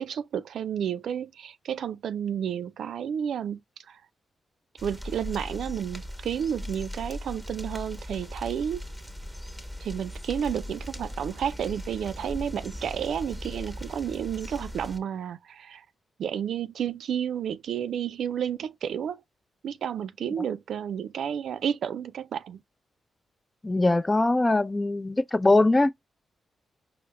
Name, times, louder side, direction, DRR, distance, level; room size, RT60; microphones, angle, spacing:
voice 1, 0.0-3.6 3.9-4.0 4.8-8.8 9.8-15.8 16.2-19.2 19.6-22.6, right 8 dB, 75° right, 0.3 m, -31 dB
Rain in the Woods, 4.8-15.0, equal, 5° right, 1.1 m, -39 dB
voice 2, 23.6-25.9, left 2 dB, 25° left, 0.5 m, -22 dB
4.6 x 2.0 x 3.2 m
supercardioid pair, 50°, 0 cm